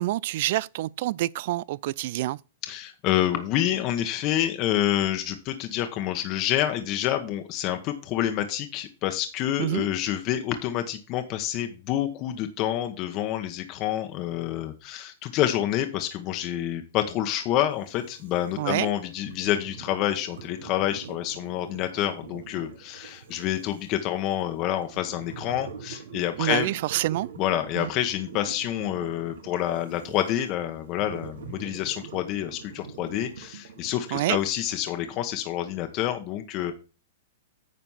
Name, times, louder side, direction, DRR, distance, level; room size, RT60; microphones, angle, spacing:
voice 1, 0.0-2.4 9.6-9.9 18.6-18.9 26.4-27.3 27.8-27.9 34.1-34.4, right 16 dB, 55° right, 0.4 m, -27 dB
voice 2, 2.6-26.7 27.4-36.7, left 12 dB, 40° left, 1.2 m, -28 dB
sound 1, 17.7-35.2, right 7 dB, 75° right, 1.5 m, -45 dB
9.5 x 5.1 x 5.7 m
hypercardioid pair, 135°, 0 cm